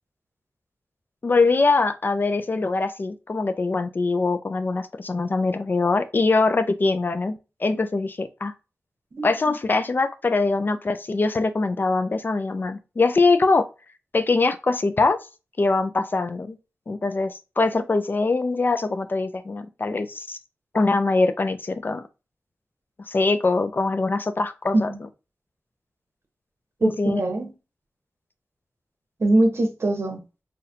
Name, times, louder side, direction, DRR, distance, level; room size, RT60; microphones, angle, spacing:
voice 1, 1.2-8.5 9.2-13.7 14.1-15.2 15.6-16.6 16.9-20.4 20.7-22.0 23.1-24.9 26.8-27.2, left 3 dB, 45° left, 0.3 m, -23 dB
voice 2, 9.1-9.5 24.7-25.0 26.8-27.5 29.2-30.2, right 2 dB, 65° right, 0.9 m, -22 dB
4.0 x 2.6 x 2.7 m
wide cardioid pair, 95°, 5 cm